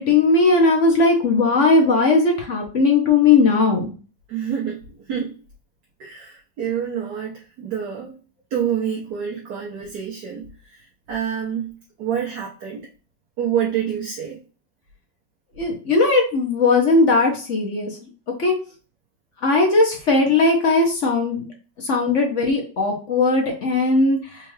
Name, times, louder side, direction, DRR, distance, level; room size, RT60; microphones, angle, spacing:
voice 1, 0.0-3.9 15.6-17.9 18.4-18.5 19.4-21.4 21.8-24.2, left 3 dB, 50° left, 1 dB, 1.0 m, -18 dB
voice 2, 4.3-4.8 5.1-5.3 6.0-8.2 8.5-10.5 10.8-11.7 12.0-12.9 13.4-14.4, right 8 dB, 65° right, -3 dB, 1.4 m, -27 dB
4.4 x 2.5 x 3.2 m, 0.35 s
omnidirectional pair, 2.0 m